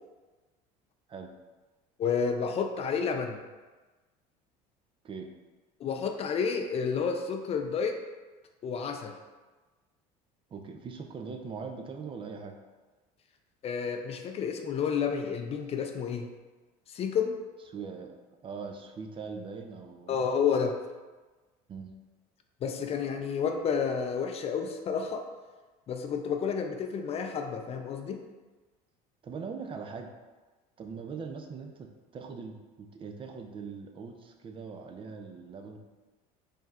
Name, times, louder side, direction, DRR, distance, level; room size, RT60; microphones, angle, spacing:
voice 1, 2.0-3.4 5.8-8.0 8.6-9.2 13.6-16.3 16.9-17.3 20.1-20.8 22.6-25.3 25.9-28.2, left 6 dB, 35° left, 5 dB, 0.4 m, -30 dB
voice 2, 10.5-12.6 17.7-18.2 18.4-20.2 21.7-21.9 29.2-30.1 30.8-35.8, right 5 dB, 30° right, 4 dB, 0.4 m, -41 dB
4.5 x 3.3 x 2.4 m, 1.3 s
supercardioid pair, 110°, 17 cm